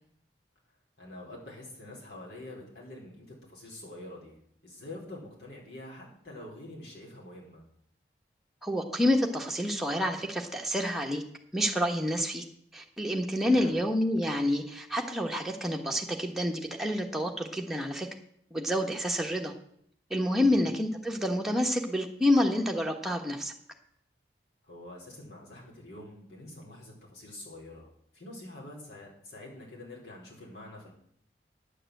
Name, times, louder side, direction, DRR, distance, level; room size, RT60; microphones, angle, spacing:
voice 1, 1.0-4.4 4.6-7.6 13.5-13.8 20.4-20.6 24.6-27.9 28.1-30.9, left 1 dB, 75° left, -3 dB, 4.4 m, -46 dB
voice 2, 8.6-11.2 11.5-12.4 12.7-18.1 18.5-19.5 20.1-23.5, left 1 dB, ahead, 0 dB, 1.3 m, -28 dB
9.9 x 7.8 x 7.8 m, 0.68 s
head